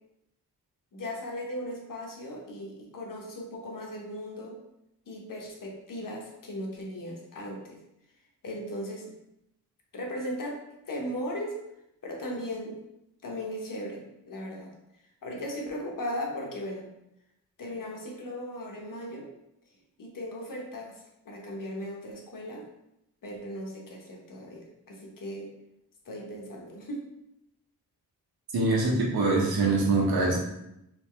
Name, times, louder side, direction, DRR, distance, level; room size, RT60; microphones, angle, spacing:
voice 1, 0.9-4.6 5.1-7.8 8.4-9.1 9.9-11.6 12.0-12.8 13.2-14.7 15.2-16.9 17.6-19.3 20.0-22.6 23.2-25.5 26.0-27.0, equal, 60° left, -1 dB, 1.2 m, -37 dB
voice 2, 28.5-30.4, right 3 dB, 80° right, -2 dB, 1.3 m, -24 dB
4.4 x 3.2 x 3.2 m, 0.83 s
cardioid pair, 80°, 37 cm